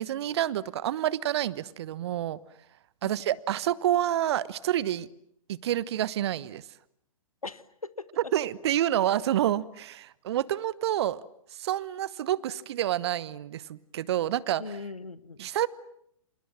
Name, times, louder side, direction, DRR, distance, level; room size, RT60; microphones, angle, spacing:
voice 1, 0.0-2.4 3.0-5.1 5.5-6.6 8.3-11.2 11.5-14.6 15.4-15.7, right 12 dB, 50° right, 1.1 m, -28 dB
voice 2, 3.0-3.4 7.4-8.3 14.6-15.4, left 3 dB, 85° left, 1.4 m, -40 dB
28.0 x 27.5 x 7.4 m
figure-of-eight pair, 115°, 18 cm